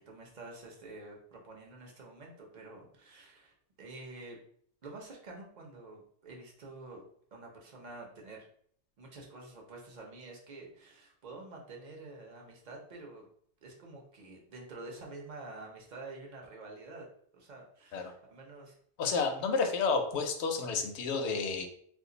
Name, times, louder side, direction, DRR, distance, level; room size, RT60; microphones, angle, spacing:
voice 1, 0.1-4.4 4.8-7.0 7.3-8.5 9.0-13.2 13.6-17.1 17.3-18.7 19.2-19.6, right 2 dB, 45° right, -1 dB, 0.8 m, -48 dB
voice 2, 19.0-21.6, left 4 dB, 75° left, 5 dB, 0.9 m, -30 dB
2.5 x 2.3 x 3.8 m, 0.63 s
omnidirectional pair, 1.2 m